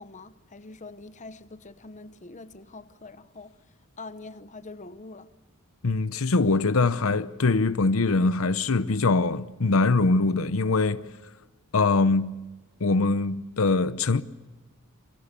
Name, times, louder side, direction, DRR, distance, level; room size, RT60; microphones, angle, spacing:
voice 1, 0.0-3.5 4.0-5.3, left 3 dB, 35° left, 1.0 m, -44 dB
voice 2, 5.8-11.1 11.7-12.4 12.8-14.2, left 3 dB, 75° left, 0.8 m, -23 dB
27.5 x 24.5 x 6.8 m
head